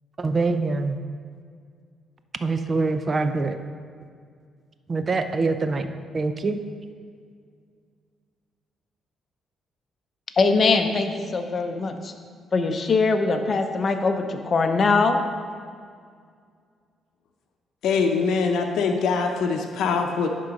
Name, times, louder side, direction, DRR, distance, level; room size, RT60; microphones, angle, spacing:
voice 1, 0.2-1.0 2.4-3.6 4.9-5.9 6.1-6.6, right 3 dB, 35° right, 9 dB, 0.5 m, -24 dB
voice 2, 10.4-12.1 12.5-15.2, left 4 dB, 45° left, 6 dB, 0.7 m, -22 dB
voice 3, 17.8-20.3, left 5 dB, 80° left, 3 dB, 0.7 m, -23 dB
11.0 x 3.8 x 5.2 m, 2.1 s
cardioid pair, 90°, 0 cm